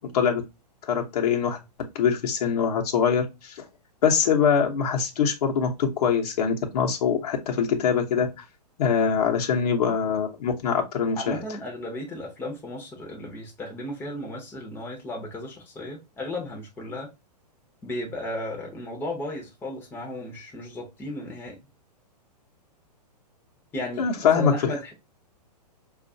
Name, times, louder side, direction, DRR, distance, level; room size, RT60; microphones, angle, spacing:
voice 1, 0.8-1.6 1.9-3.6 4.0-8.4 8.8-11.4 24.0-24.7, left 6 dB, 65° left, 0.9 m, -23 dB
voice 2, 11.2-17.1 17.8-21.6 23.7-24.1 24.3-24.9, left 1 dB, 10° left, 0.7 m, -34 dB
4.4 x 2.4 x 2.6 m
hypercardioid pair, 135°, 21 cm